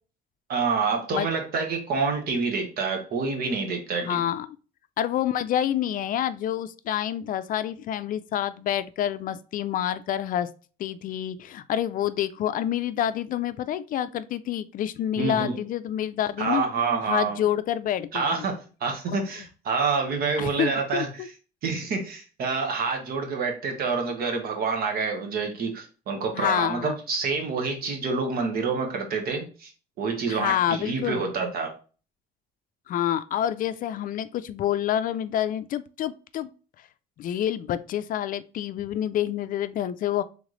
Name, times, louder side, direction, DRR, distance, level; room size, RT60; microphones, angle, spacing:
voice 1, 0.5-4.3 15.2-15.6 16.4-17.4 18.1-21.3 21.6-29.7 30.0-31.7, right 4 dB, 65° right, 1.3 m, -27 dB
voice 2, 4.1-4.6 5.0-10.5 10.8-16.6 17.1-18.5 19.1-19.2 20.4-21.3 26.3-27.0 30.3-31.2 32.9-36.5 37.2-40.2, left 11 dB, 55° left, 0.4 m, -28 dB
3.5 x 3.2 x 3.8 m
cardioid pair, 110°, 17 cm